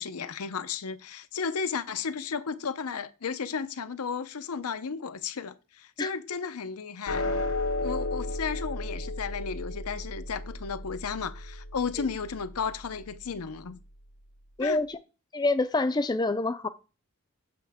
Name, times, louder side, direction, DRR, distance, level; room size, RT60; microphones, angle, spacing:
voice 1, 0.0-7.3 7.8-13.8 14.6-14.8, left 6 dB, 90° left, 0.6 m, -34 dB
sound 1, 7.1-13.6, left 2 dB, 65° left, 1.0 m, -34 dB
voice 2, 14.6-15.0 15.3-16.7, left 2 dB, 20° left, 0.4 m, -26 dB
7.8 x 6.1 x 3.5 m
head